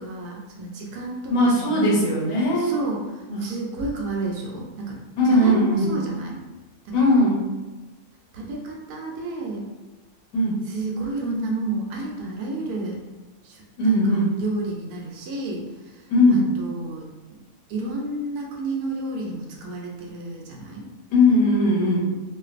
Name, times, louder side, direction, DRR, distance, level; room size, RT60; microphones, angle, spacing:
voice 1, 0.0-2.0 2.6-5.0 5.2-6.4 6.8-7.1 8.3-9.7 10.7-13.0 13.4-17.4 17.7-20.9, right 2 dB, 85° right, -1 dB, 1.1 m, -31 dB
voice 2, 1.3-2.7 3.3-3.5 5.2-6.0 6.9-7.4 10.3-10.6 13.8-14.3 16.1-16.5 21.1-22.2, left 1 dB, 90° left, -5 dB, 1.2 m, -19 dB
2.5 x 2.5 x 2.4 m, 1.2 s
omnidirectional pair, 1.6 m